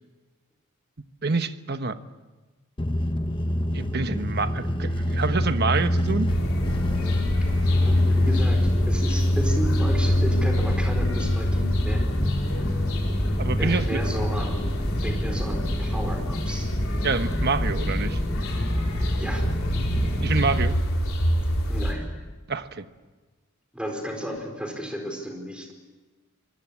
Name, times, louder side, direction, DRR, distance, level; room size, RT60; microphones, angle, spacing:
voice 1, 1.2-2.0 3.7-6.3 13.4-14.0 17.0-18.2 20.2-20.7 22.5-22.8, right 4 dB, 45° right, 10 dB, 1.1 m, -27 dB
sound 1, 2.8-20.6, left 1 dB, 20° left, 1.1 m, -25 dB
sound 2, 6.3-21.9, equal, 70° left, 4.4 m, -28 dB
voice 2, 7.8-8.6 8.9-12.2 13.6-14.7 15.0-16.7 19.2-19.5 21.7-22.0 23.7-25.7, equal, 5° right, 3 dB, 4.6 m, -33 dB
25.5 x 21.0 x 8.8 m, 1.3 s
head